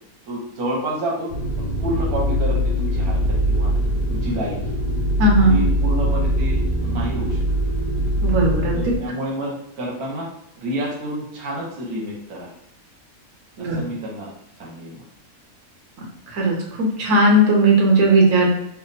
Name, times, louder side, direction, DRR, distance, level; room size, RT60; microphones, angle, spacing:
voice 1, 0.3-3.7 4.1-4.6 5.5-7.4 8.7-10.3 10.6-12.5 13.6-14.3 14.6-15.0, right 1 dB, 85° right, -3 dB, 1.3 m, -29 dB
sound 1, 1.3-9.0, equal, 85° left, 0.4 m, -22 dB
voice 2, 5.2-5.6 8.2-8.8 13.6-13.8 16.3-18.5, right 1 dB, 65° right, -1 dB, 1.2 m, -17 dB
3.4 x 2.2 x 4.0 m, 0.77 s
omnidirectional pair, 1.5 m